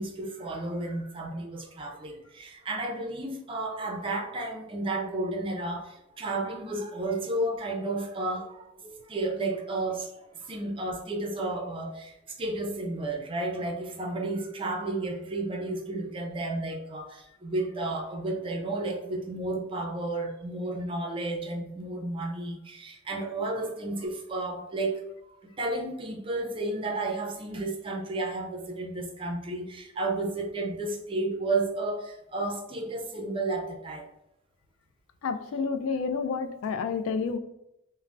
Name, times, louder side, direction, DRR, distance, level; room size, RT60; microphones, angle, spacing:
voice 1, 0.0-34.1, right 2 dB, 25° right, 1 dB, 0.4 m, -32 dB
voice 2, 35.2-37.4, left 5 dB, 85° left, 10 dB, 0.3 m, -29 dB
2.5 x 2.0 x 3.2 m, 0.84 s
head